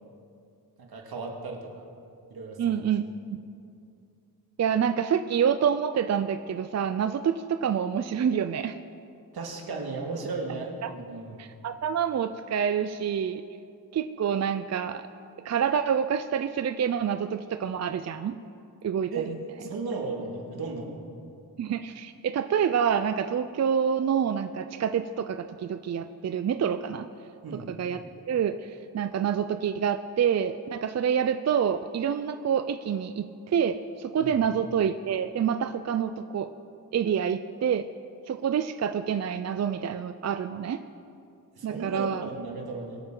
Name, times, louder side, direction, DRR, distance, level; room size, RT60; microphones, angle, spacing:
voice 1, 0.8-1.8 2.3-2.8 9.3-11.5 19.1-21.0 27.4-27.7 34.2-34.3 41.6-43.0, right 3 dB, 80° right, 0 dB, 2.1 m, -35 dB
voice 2, 2.6-3.0 4.6-8.8 10.8-10.9 11.4-13.4 13.9-15.1 15.4-18.3 18.8-19.4 21.6-27.1 27.7-28.0 28.3-36.5 36.9-37.9 38.3-40.8 41.6-42.3, right 8 dB, 45° right, 10 dB, 0.5 m, -27 dB
23.0 x 8.8 x 3.9 m, 2.5 s
wide cardioid pair, 95°, 37 cm